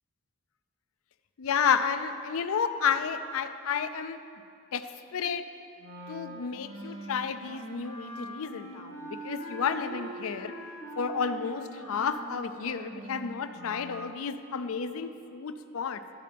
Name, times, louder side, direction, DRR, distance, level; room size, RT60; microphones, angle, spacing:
voice 1, 1.4-4.2 4.7-4.8 5.1-5.4 6.1-10.5 11.0-16.0, left 6 dB, 70° left, 10 dB, 0.4 m, -31 dB
Wind instrument woodwind instrument, 5.8-14.1, right 1 dB, 60° right, 1.3 m, -43 dB
12.5 x 7.4 x 3.4 m, 2.5 s
head